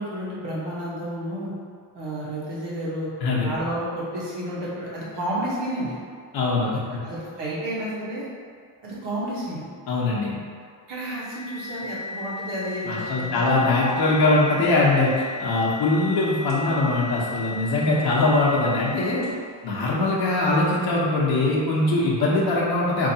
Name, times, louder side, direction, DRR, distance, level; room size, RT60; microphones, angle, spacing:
voice 1, 0.0-1.5 1.9-3.1 3.4-5.9 6.9-8.3 8.8-9.7 10.9-13.5, right 1 dB, 85° right, -7 dB, 1.3 m, -31 dB
voice 2, 3.2-3.5 6.3-6.8 9.9-10.3 12.8-19.2 19.6-23.1, left 2 dB, 65° left, -5 dB, 0.9 m, -22 dB
sound 1, 11.0-19.5, left 3 dB, 20° right, 1.3 m, -35 dB
4.5 x 2.8 x 2.7 m, 2.1 s
cardioid pair, 155°, 40 cm